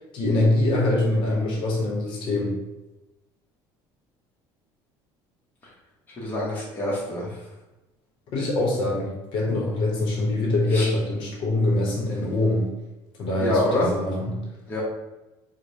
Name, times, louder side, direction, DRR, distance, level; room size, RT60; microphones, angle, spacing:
voice 1, 0.1-2.6 8.3-12.7 13.2-14.4, left 2 dB, 50° left, -3 dB, 0.8 m, -24 dB
voice 2, 6.2-7.4 10.7-10.9 13.4-13.9 14.7-14.8, left 1 dB, 20° left, -6 dB, 0.8 m, -26 dB
4.8 x 2.1 x 2.6 m, 1.0 s
cardioid pair, 175°, 10 cm